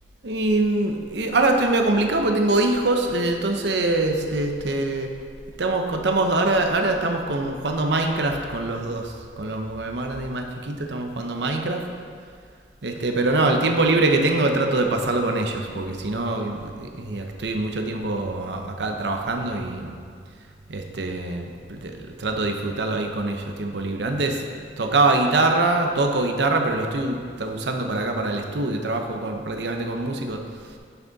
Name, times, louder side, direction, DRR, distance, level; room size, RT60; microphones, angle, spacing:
voice 1, 0.2-5.1 5.6-11.8 12.8-19.9 20.7-24.4 24.8-30.4, right 2 dB, 70° right, 3 dB, 0.8 m, -24 dB
9.2 x 6.0 x 4.0 m, 2.1 s
head